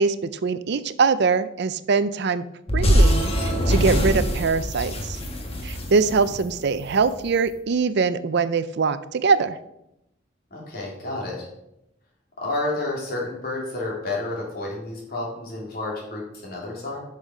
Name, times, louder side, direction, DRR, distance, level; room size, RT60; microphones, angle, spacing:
voice 1, 0.0-2.5 2.7-5.2 5.6-9.6, right 4 dB, 55° right, 13 dB, 0.5 m, -23 dB
sound 1, 2.7-7.1, equal, 30° left, 1.4 m, -22 dB
voice 2, 10.5-11.5 12.4-17.0, left 2 dB, 50° left, -3 dB, 3.2 m, -30 dB
9.6 x 6.4 x 5.0 m, 0.85 s
head